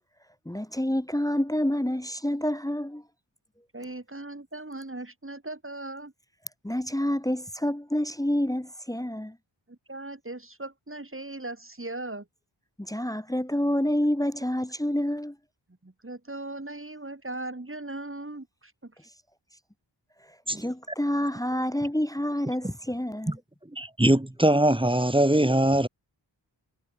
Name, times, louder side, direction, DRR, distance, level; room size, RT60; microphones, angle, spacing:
voice 1, 0.5-3.0 6.6-9.4 12.8-15.4 20.5-23.4, left 1 dB, 10° left, 1.0 m, -28 dB
voice 2, 3.7-6.1 9.7-12.3 15.8-19.0, right 2 dB, 25° right, 6.3 m, -38 dB
voice 3, 23.7-25.9, right 1 dB, 10° right, 1.9 m, -22 dB
wide cardioid pair, 65°, 46 cm